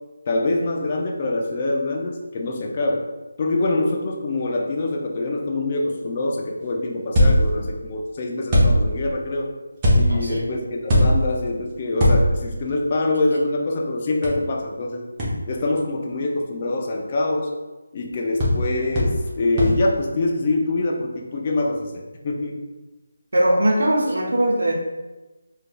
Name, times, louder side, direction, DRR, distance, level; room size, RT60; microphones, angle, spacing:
voice 1, 0.3-3.1 3.4-9.5 9.9-15.0 15.4-17.5 17.9-22.6, left 2 dB, 35° left, 1 dB, 0.4 m, -24 dB
sound 1, 7.1-7.8 8.5-9.1 9.8-10.3 10.9-11.5 12.0-12.6 14.2-14.3 15.2-15.3 18.4-18.7 19.0-19.3 19.6-19.8, equal, 20° right, 0.9 m, -19 dB
voice 2, 10.1-10.5 23.3-24.7, right 1 dB, 65° right, -1 dB, 0.9 m, -20 dB
4.5 x 2.6 x 2.3 m, 1.2 s
figure-of-eight pair, 160°, 0 cm